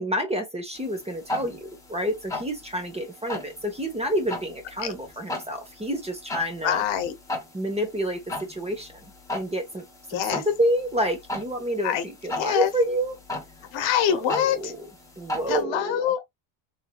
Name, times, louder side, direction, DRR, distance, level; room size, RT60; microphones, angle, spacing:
voice 1, 0.0-6.8 7.5-9.8 10.1-12.0 12.2-13.1 14.1-14.8 15.2-16.1, equal, 15° right, 1.0 m, -28 dB
sound 1, 0.7-15.6, left 1 dB, 5° left, 1.5 m, -38 dB
voice 2, 6.6-7.2 10.1-10.4 11.8-12.1 12.3-12.7 13.7-14.7 15.5-16.3, left 9 dB, 65° left, 0.9 m, -25 dB
3.2 x 2.7 x 2.3 m
cardioid pair, 110°, 49 cm